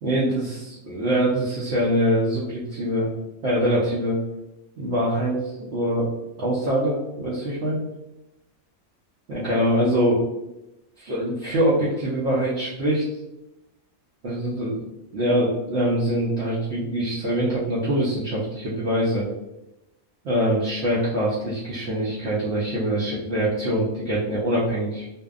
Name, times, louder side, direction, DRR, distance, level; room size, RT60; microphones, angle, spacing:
voice 1, 0.0-3.1 3.4-4.2 4.8-5.4 5.7-6.1 6.4-7.8 9.3-10.2 11.0-13.0 14.2-14.8 15.1-19.3 20.2-25.1, right 1 dB, 60° right, -7 dB, 0.8 m, -24 dB
2.6 x 2.1 x 2.3 m, 0.93 s
omnidirectional pair, 1.5 m